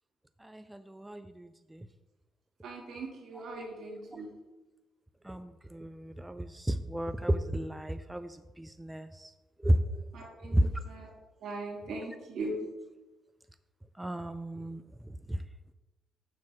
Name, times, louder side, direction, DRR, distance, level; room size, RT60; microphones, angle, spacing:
voice 1, 0.4-1.9 4.1-4.2 5.2-9.3 9.6-10.1 10.4-10.7 14.0-15.4, right 1 dB, 10° right, 10 dB, 0.4 m, -33 dB
voice 2, 2.6-4.3 10.1-11.1 11.4-12.7, right 2 dB, 75° right, -2 dB, 2.5 m, -40 dB
7.2 x 4.1 x 6.5 m, 1.1 s
cardioid pair, 90°, 0 cm